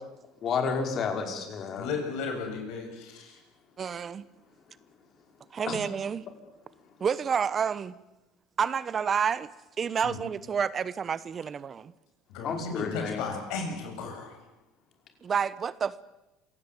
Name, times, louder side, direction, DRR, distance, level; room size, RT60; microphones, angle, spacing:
voice 1, 0.4-1.9 5.7-5.8 12.4-13.2, left 5 dB, 45° left, 5 dB, 5.5 m, -30 dB
voice 2, 1.7-3.4 10.0-10.2 12.3-14.4, left 4 dB, 70° left, 4 dB, 7.7 m, -35 dB
voice 3, 3.8-4.2 5.5-6.3 7.0-8.0 8.6-9.5 9.8-11.9 15.2-16.0, right 7 dB, 35° right, 18 dB, 1.0 m, -29 dB
27.0 x 17.0 x 9.3 m, 0.99 s
supercardioid pair, 90°, 0 cm